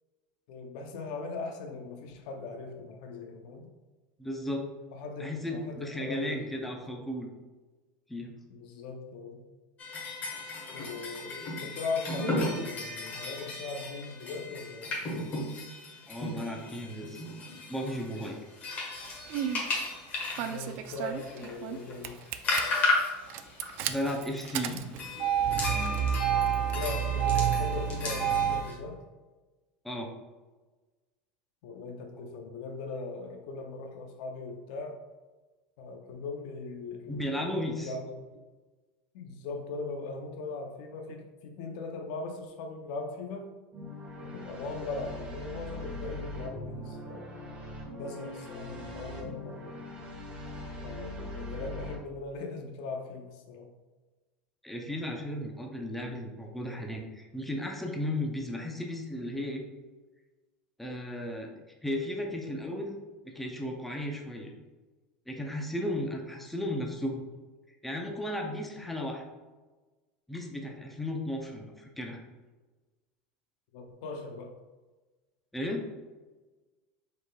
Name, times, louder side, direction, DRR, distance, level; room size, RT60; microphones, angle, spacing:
voice 1, 0.5-3.7 4.9-6.7 8.5-9.4 10.7-15.3 20.4-22.2 26.7-29.0 31.6-35.0 35.8-38.1 39.1-43.5 44.2-47.4 47.9-49.8 50.8-53.7 73.7-74.5, left 3 dB, 65° left, 4 dB, 0.6 m, -39 dB
voice 2, 4.2-4.7 5.2-7.3 8.1-8.3 16.1-17.2 17.7-18.4 23.9-24.8 29.8-30.1 37.1-37.9 54.6-59.6 60.8-63.0 63.2-64.5 65.3-67.2 67.8-69.2 70.3-72.2 75.5-75.8, left 1 dB, 5° left, 1 dB, 0.5 m, -35 dB
sound 1, 9.8-28.7, left 2 dB, 35° left, 1.3 m, -35 dB
Engine starting, 19.0-19.6 20.4-21.8 22.0-22.6 23.3-28.6, right 9 dB, 55° right, 0.3 m, -29 dB
sound 2, 43.7-52.0, left 1 dB, 30° right, 1.3 m, -41 dB
5.0 x 4.0 x 2.3 m, 1.3 s
supercardioid pair, 135°, 4 cm